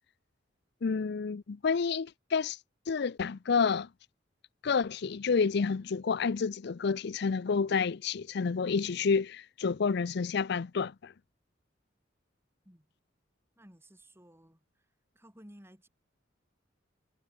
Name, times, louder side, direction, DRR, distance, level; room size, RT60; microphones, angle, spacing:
voice 1, 0.8-2.6 2.9-3.9 4.6-11.1, left 5 dB, 60° left, 0.5 m, -29 dB
voice 2, 13.6-14.9 15.1-15.9, equal, 15° right, 6.2 m, -56 dB
head